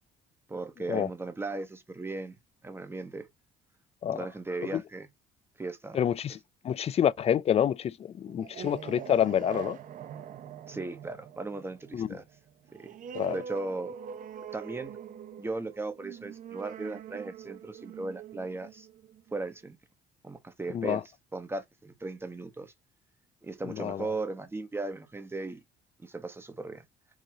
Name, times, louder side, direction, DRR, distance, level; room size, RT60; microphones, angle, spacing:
voice 1, 0.5-2.4 2.6-3.3 4.1-5.1 5.6-6.0 10.7-12.2 12.7-12.9 13.2-13.9 14.5-15.0 15.4-18.9 19.3-19.8 20.2-21.0 21.3-22.7 23.4-25.6 26.0-26.8, right 3 dB, 15° right, 1.1 m, -37 dB
voice 2, 5.9-6.4 6.6-9.8 11.9-12.1 13.1-13.4 20.7-21.0 23.7-24.1, left 9 dB, 40° left, 0.4 m, -27 dB
sound 1, 8.3-19.5, right 8 dB, 50° right, 0.7 m, -43 dB
4.8 x 3.9 x 2.8 m
cardioid pair, 110°, 17 cm